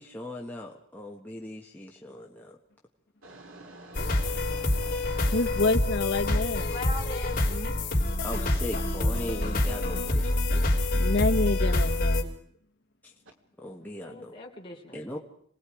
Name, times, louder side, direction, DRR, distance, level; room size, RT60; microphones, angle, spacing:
voice 1, 0.0-2.6 8.2-10.2 13.6-14.4 14.9-15.2, left 1 dB, 10° left, -2 dB, 1.5 m, -39 dB
voice 2, 3.2-5.4, right 2 dB, 90° right, 4 dB, 2.6 m, -47 dB
sound 1, 3.9-12.2, left 1 dB, 45° left, 3.3 m, -26 dB
voice 3, 5.3-6.7 11.0-12.3, left 2 dB, 60° left, 3 dB, 1.3 m, -27 dB
voice 4, 6.2-7.7 8.7-9.1 13.8-15.0, left 2 dB, 25° left, -2 dB, 3.3 m, -41 dB
27.0 x 19.0 x 5.0 m, 0.62 s
head